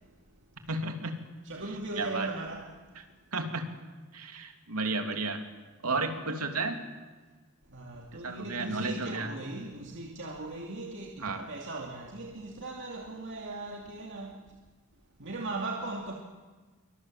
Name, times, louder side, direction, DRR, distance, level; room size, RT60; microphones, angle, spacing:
voice 1, 0.7-1.2 1.9-2.3 3.3-3.7 4.1-5.4 5.8-6.8 8.1-9.3 11.2-11.4, right 3 dB, 85° right, 3.2 m, -32 dB
voice 2, 1.4-2.8 5.9-6.0 7.7-14.3 15.2-16.1, right 2 dB, 55° right, 2.7 m, -38 dB
27.5 x 24.5 x 7.7 m
head